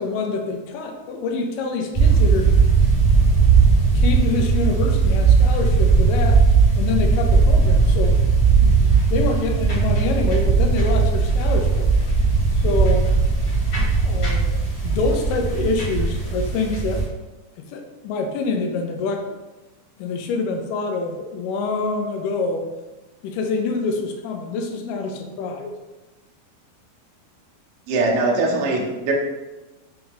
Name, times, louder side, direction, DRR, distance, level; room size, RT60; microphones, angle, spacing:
voice 1, 0.0-2.5 3.9-6.5 6.8-8.2 8.6-11.9 12.5-13.1 14.0-14.6 14.8-17.1 17.6-19.4 20.0-22.7 23.2-25.8, left 4 dB, 80° left, 4 dB, 2.1 m, -26 dB
sound 1, 1.9-17.0, right 4 dB, 45° left, 1.5 m, -18 dB
voice 2, 27.9-29.1, right 3 dB, 75° right, -2 dB, 1.5 m, -21 dB
5.7 x 2.7 x 3.5 m, 1.1 s
omnidirectional pair, 4.0 m